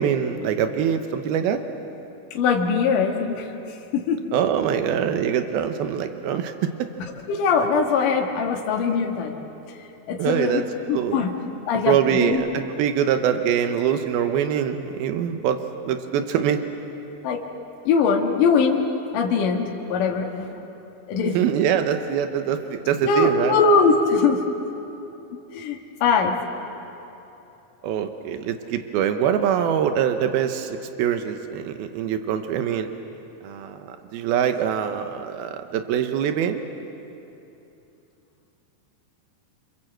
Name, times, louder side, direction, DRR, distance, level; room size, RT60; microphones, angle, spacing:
voice 1, 0.0-1.6 4.3-6.7 10.2-10.6 10.9-11.2 11.9-15.6 15.9-16.6 21.2-23.6 27.8-32.9 33.4-36.6, right 9 dB, 85° right, 7 dB, 2.8 m, -24 dB
voice 2, 2.3-3.5 3.9-4.2 7.3-9.3 10.1-10.6 10.9-11.3 11.7-12.4 17.2-17.4 17.9-18.8 19.1-20.5 21.1-21.4 23.0-24.4 25.5-26.3, left 5 dB, 65° left, 0 dB, 3.1 m, -21 dB
28.0 x 25.5 x 7.8 m, 2.9 s
omnidirectional pair, 4.3 m